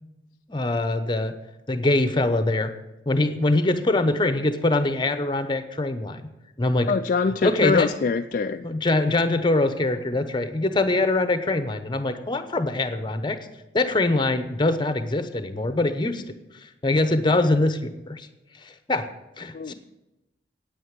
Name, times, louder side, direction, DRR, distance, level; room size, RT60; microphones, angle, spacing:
voice 1, 0.5-1.3 1.7-2.7 3.1-6.2 6.6-6.9 7.4-7.9 8.6-13.4 13.7-16.2 16.8-18.3 18.6-19.1 19.4-19.7, left 2 dB, 25° left, 10 dB, 0.9 m, -23 dB
voice 2, 6.9-8.7 19.5-19.7, left 4 dB, 45° left, 7 dB, 0.4 m, -24 dB
9.4 x 8.8 x 7.3 m, 1.0 s
head